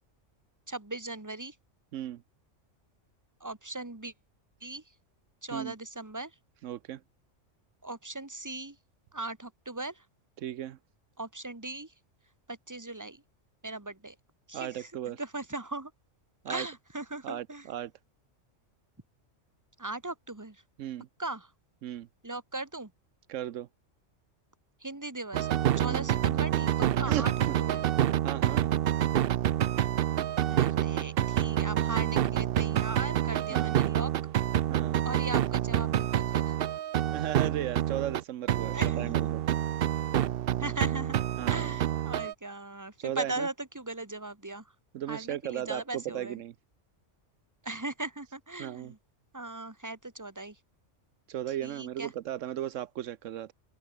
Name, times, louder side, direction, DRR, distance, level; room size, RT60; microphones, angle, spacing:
voice 1, 0.7-1.6 3.4-4.1 4.6-4.8 5.4-6.4 7.8-8.8 9.1-10.1 11.2-11.9 12.5-13.2 13.6-14.2 14.5-15.9 16.5-17.7 19.8-20.6 21.2-21.5 22.2-22.9 24.8-25.5 25.8-27.3 27.6-27.8 30.5-34.1 35.0-36.6 38.7-39.3 40.6-41.2 41.5-44.7 45.1-46.4 47.6-49.0 49.3-50.6 51.5-52.1, right 2 dB, 15° right, 1.9 m, -38 dB
voice 2, 6.6-7.0 10.4-10.8 14.5-15.2 16.4-16.7 17.2-17.9 20.8-21.1 21.8-22.1 23.3-23.7 25.8-26.1 27.1-27.6 28.2-28.7 33.5-33.7 34.7-35.0 37.1-39.4 41.4-41.7 43.0-43.5 44.9-46.5 48.6-48.9 51.3-53.5, right 11 dB, 80° right, 1.0 m, -36 dB
sound 1, 25.3-38.2 38.5-42.3, right 11 dB, 60° right, 0.7 m, -27 dB
open air
omnidirectional pair, 1.3 m